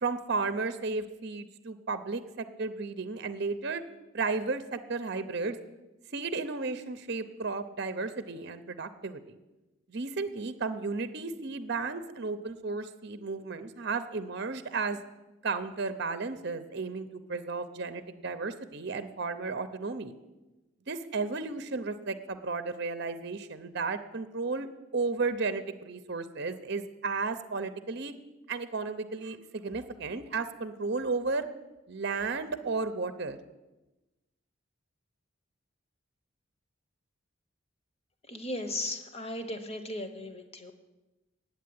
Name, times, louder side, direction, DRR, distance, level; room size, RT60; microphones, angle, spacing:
voice 1, 0.0-3.8 4.1-5.6 6.1-9.2 9.9-15.0 15.4-20.1 20.9-24.7 24.9-28.1 28.5-31.5 31.9-33.4, right 4 dB, 50° right, 11 dB, 0.7 m, -33 dB
voice 2, 38.3-40.7, left 1 dB, 30° left, 7 dB, 1.0 m, -36 dB
9.4 x 8.2 x 9.5 m, 1.1 s
head